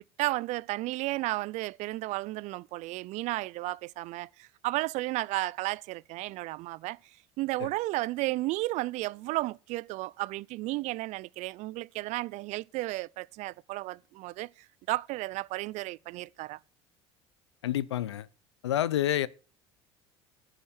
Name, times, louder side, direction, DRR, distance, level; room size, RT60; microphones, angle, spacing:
voice 1, 0.2-7.0 7.4-14.5 14.9-16.6, right 19 dB, 55° right, 0.5 m, -33 dB
voice 2, 17.6-18.3 18.6-19.3, left 12 dB, 85° left, 0.6 m, -28 dB
11.0 x 10.5 x 4.3 m
hypercardioid pair, 70°, 14 cm